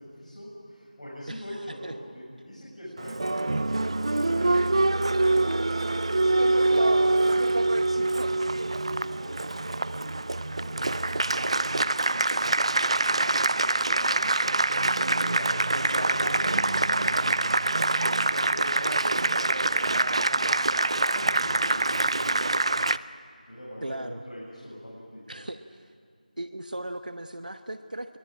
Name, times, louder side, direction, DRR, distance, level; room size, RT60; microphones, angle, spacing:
voice 1, 0.0-5.8 6.4-10.1 10.6-13.3 13.6-14.2 14.9-20.5 21.0-22.4 22.7-23.0 23.5-25.4, equal, 55° left, -6 dB, 7.2 m, -43 dB
voice 2, 1.3-1.9 6.7-7.1 15.7-16.1 23.8-24.2 25.3-25.9 26.4-28.2, right 1 dB, 70° right, 9 dB, 1.1 m, -37 dB
Applause, 3.0-23.0, right 2 dB, 40° right, 0.5 m, -25 dB
24.0 x 18.5 x 8.8 m, 2.5 s
figure-of-eight pair, 170°, 5 cm